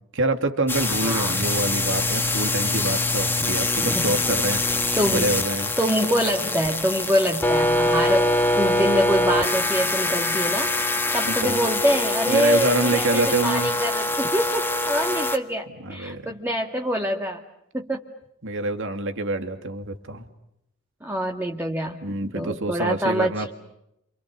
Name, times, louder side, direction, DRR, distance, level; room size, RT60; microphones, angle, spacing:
voice 1, 0.1-4.6 5.0-5.7 11.2-11.6 12.3-13.7 15.8-16.3 18.4-20.2 22.0-23.5, right 2 dB, 65° right, 6 dB, 2.7 m, -26 dB
sound 1, 0.7-15.4, left 2 dB, 10° left, 1.6 m, -24 dB
voice 2, 0.9-1.4 3.8-4.1 5.0-5.3 5.8-10.7 11.1-17.4 17.7-18.0 21.0-22.0 22.3-23.5, equal, 10° right, 2 dB, 1.9 m, -25 dB
30.0 x 27.5 x 6.7 m, 0.81 s
head